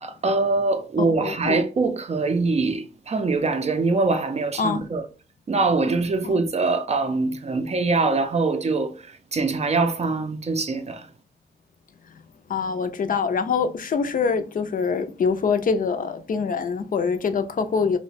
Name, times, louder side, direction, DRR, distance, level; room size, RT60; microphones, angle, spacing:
voice 1, 0.0-5.1 5.5-11.1, right 3 dB, 40° right, 0.4 m, -23 dB
voice 2, 1.0-1.6 4.6-4.8 6.2-6.4 12.5-18.0, left 5 dB, 50° left, 0.4 m, -24 dB
2.9 x 2.1 x 4.0 m
wide cardioid pair, 95°, 18 cm